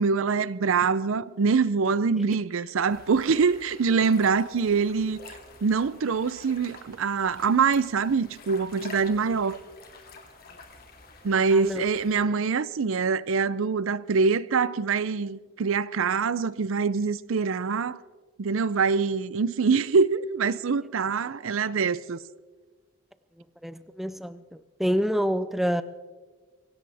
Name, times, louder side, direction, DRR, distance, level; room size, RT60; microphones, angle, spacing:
voice 1, 0.0-5.2 5.6-9.6 11.2-18.0 18.4-22.2, right 5 dB, 70° right, 0.5 m, -24 dB
sound 1, 2.9-12.2, left 3 dB, 45° left, 2.4 m, -49 dB
voice 2, 11.5-11.8 23.6-24.4 24.8-25.8, equal, ahead, 0.4 m, -27 dB
24.5 x 17.0 x 3.5 m
head